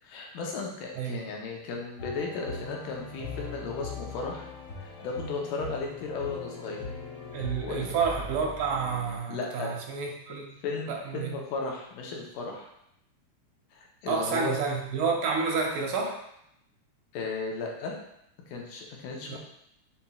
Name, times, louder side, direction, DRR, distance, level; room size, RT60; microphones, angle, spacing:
voice 1, 0.0-4.5 4.8-6.8 7.6-7.9 9.3-9.7 10.6-12.7 13.7-14.5 17.1-17.9 18.5-19.4, left 4 dB, 90° left, -1 dB, 2.3 m, -35 dB
sound 1, 2.0-9.2, left 3 dB, 60° left, 1.3 m, -40 dB
voice 2, 7.3-10.6 10.9-11.3 14.1-16.2 19.3-19.4, right 5 dB, 90° right, 1 dB, 2.3 m, -29 dB
6.8 x 2.9 x 2.3 m, 0.76 s
omnidirectional pair, 3.5 m